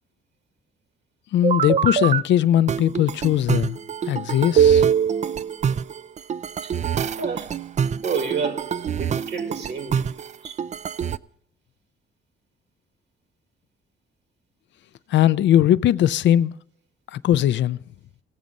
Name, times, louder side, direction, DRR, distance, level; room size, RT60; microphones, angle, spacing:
voice 1, 1.3-3.8 4.1-4.9 15.1-16.5 17.1-17.8, left 11 dB, 65° left, 0.5 m, -19 dB
sound 1, 1.4-2.2 2.7-11.2, right 8 dB, 35° right, 0.4 m, -24 dB
voice 2, 7.2-7.6 7.9-10.1 10.4-10.6, right 5 dB, 60° right, 2.0 m, -30 dB
18.0 x 7.3 x 5.3 m
cardioid pair, 90°, 20 cm